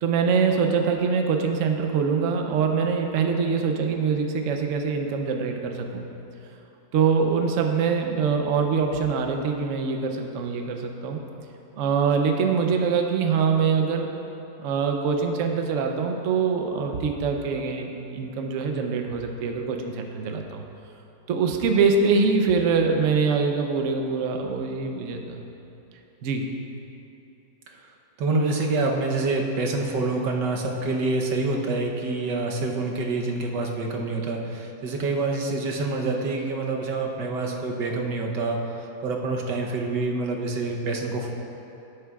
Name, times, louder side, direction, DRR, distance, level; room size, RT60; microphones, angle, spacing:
voice 1, 0.0-6.1 6.9-11.2 11.8-14.1 14.6-20.6 21.3-25.4 26.2-26.4, right 5 dB, 60° right, 3 dB, 0.9 m, -24 dB
voice 2, 28.2-41.3, right 3 dB, 85° right, 0 dB, 1.6 m, -27 dB
16.5 x 8.0 x 2.4 m, 2.9 s
omnidirectional pair, 1.9 m